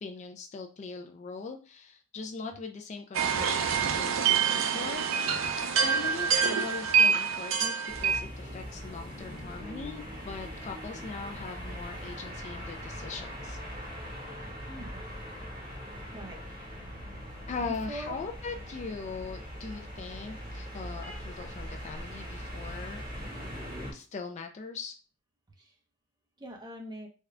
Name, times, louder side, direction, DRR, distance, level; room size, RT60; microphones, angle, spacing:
voice 1, 0.0-5.1 5.7-13.6 17.5-23.0 23.9-24.9, left 4 dB, 35° left, 5 dB, 0.3 m, -40 dB
sound 1, 3.1-8.2, right 6 dB, 70° right, 0.5 m, -26 dB
sound 2, 7.9-23.9, equal, 45° right, 1.4 m, -41 dB
voice 2, 14.7-15.0 16.1-16.8 17.7-18.1 25.6-25.7 26.4-27.1, right 1 dB, 20° right, 1 dB, 0.7 m, -43 dB
3.6 x 2.2 x 3.2 m, 0.35 s
head